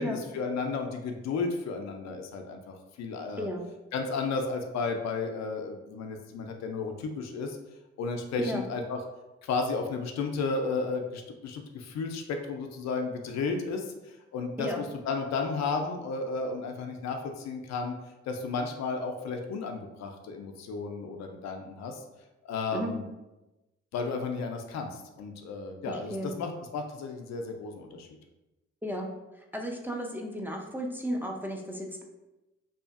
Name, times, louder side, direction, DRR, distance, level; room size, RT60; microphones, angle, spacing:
voice 1, 0.0-3.5 3.9-7.6 8.0-9.0 9.4-17.9 18.3-22.0 22.4-23.0 23.9-28.1, left 4 dB, 65° left, 4 dB, 0.4 m, -33 dB
voice 2, 3.4-3.7 8.4-8.6 14.6-14.8 22.7-22.9 25.9-26.3 28.8-29.1 29.5-32.0, equal, 5° right, 0 dB, 0.5 m, -34 dB
2.7 x 2.4 x 2.4 m, 1.0 s
hypercardioid pair, 45°, 29 cm